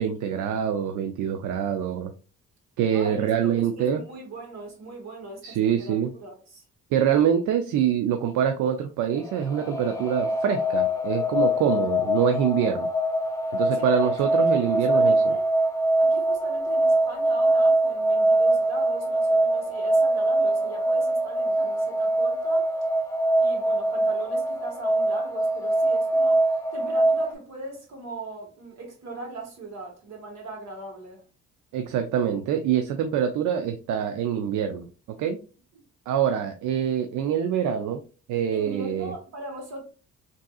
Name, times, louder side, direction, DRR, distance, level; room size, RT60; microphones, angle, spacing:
voice 1, 0.0-2.1 2.8-4.0 5.4-6.1 6.9-12.9 13.5-15.3 31.7-34.9 35.2-35.4 36.1-38.0 38.3-39.1, right 8 dB, 80° right, 0.5 m, -25 dB
voice 2, 2.9-6.6 13.7-15.5 16.0-22.7 23.4-26.5 26.7-31.2 38.5-39.8, right 2 dB, 60° right, 1.6 m, -39 dB
sound 1, 9.2-27.3, right 1 dB, 10° left, 0.5 m, -23 dB
3.5 x 2.7 x 2.3 m
cardioid pair, 90°, 30 cm